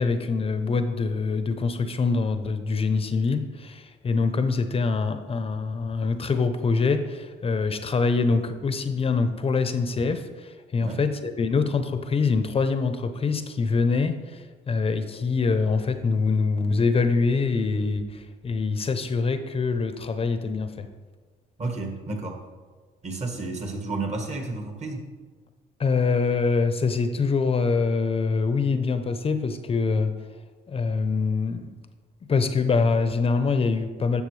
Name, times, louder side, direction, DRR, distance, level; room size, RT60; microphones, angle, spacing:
voice 1, 0.0-20.9 25.8-30.2 30.7-31.7 32.3-34.2, left 4 dB, 30° left, 9 dB, 0.7 m, -24 dB
voice 2, 21.6-22.4 23.0-25.1, right 3 dB, 35° right, 3 dB, 1.6 m, -31 dB
11.0 x 6.8 x 3.3 m, 1.4 s
cardioid pair, 95°, 18 cm